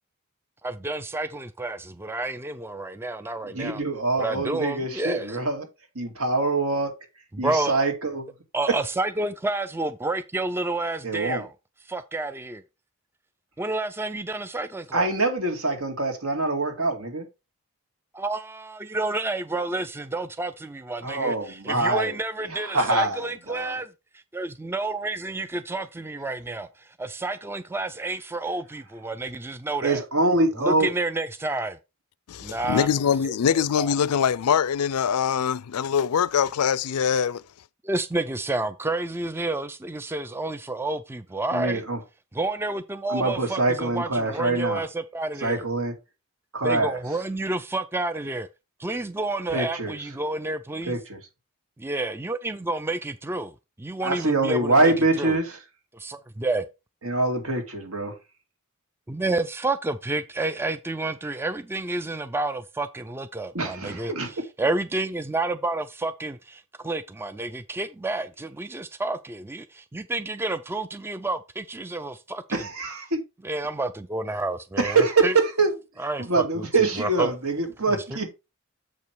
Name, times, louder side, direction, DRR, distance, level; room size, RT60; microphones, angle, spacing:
voice 1, 0.6-3.8 4.2-5.4 7.3-7.8 8.5-11.5 11.9-12.6 13.6-15.1 18.1-23.9 24.3-30.0 30.6-31.8 32.4-32.9 33.2-33.9 37.8-41.8 42.3-45.6 46.6-48.5 48.8-51.0 51.8-55.4 55.9-56.7 59.1-72.6 73.4-75.3 76.0-77.3 77.8-78.2, right 2 dB, 10° right, 0.4 m, -30 dB
voice 2, 3.5-5.7 6.0-6.9 7.4-8.3 11.0-11.4 14.9-17.3 21.0-22.1 22.4-23.8 29.8-30.9 41.5-42.0 43.1-44.8 45.4-45.9 46.5-47.0 49.5-50.0 50.9-51.2 54.0-55.6 57.0-58.1 63.5-64.3 72.5-73.2 74.8-75.7 76.2-78.3, right 2 dB, 75° right, 2.2 m, -24 dB
voice 3, 32.3-37.4, left 7 dB, 85° left, 0.4 m, -23 dB
7.4 x 5.3 x 4.5 m
head